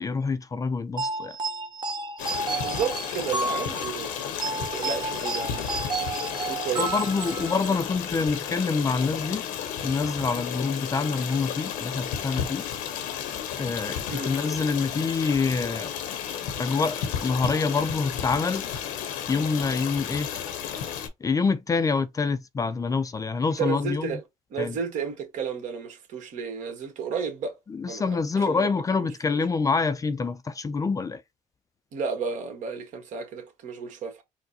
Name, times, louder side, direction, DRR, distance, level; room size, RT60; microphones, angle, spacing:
voice 1, 0.0-1.4 6.8-9.5 9.8-12.6 13.6-15.9 16.6-18.7 19.3-20.3 21.2-24.2 24.6-24.8 27.7-31.2, left 4 dB, 25° left, 0.4 m, -26 dB
sound 1, 1.0-7.8, right 3 dB, 35° right, 0.7 m, -32 dB
Stream, 2.2-21.1, left 8 dB, 90° left, 1.0 m, -33 dB
voice 2, 2.6-5.8 6.4-7.0 14.1-14.3 23.6-24.2 24.5-27.6 27.9-28.7 29.0-29.1 31.9-34.2, right 6 dB, 65° right, 1.5 m, -32 dB
4.5 x 2.2 x 2.7 m
cardioid pair, 105°, 14 cm